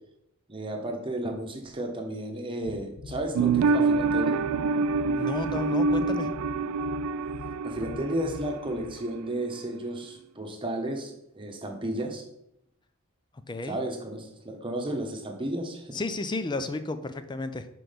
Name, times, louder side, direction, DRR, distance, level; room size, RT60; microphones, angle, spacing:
voice 1, 0.5-4.4 7.6-12.2 13.6-16.0, right 1 dB, 25° right, 2 dB, 1.0 m, -33 dB
sound 1, 2.6-9.0, left 4 dB, 60° left, 0.6 m, -43 dB
sound 2, 3.4-8.9 9.1-9.2, right 4 dB, 75° right, 0.3 m, -26 dB
voice 2, 5.1-6.3 13.5-13.8 15.9-17.7, left 2 dB, 20° left, 10 dB, 0.4 m, -32 dB
6.1 x 4.6 x 5.1 m, 0.79 s
head